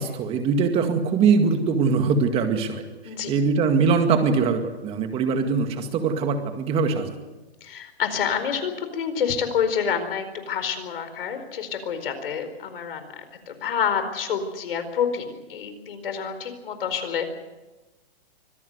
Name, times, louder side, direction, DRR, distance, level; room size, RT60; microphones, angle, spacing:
voice 1, 0.0-2.8 3.3-7.2, right 5 dB, 20° right, 7 dB, 2.1 m, -22 dB
voice 2, 3.0-3.4 7.6-17.3, left 7 dB, 60° left, 9 dB, 4.6 m, -28 dB
25.0 x 17.0 x 8.1 m, 1.1 s
hypercardioid pair, 155°, 31 cm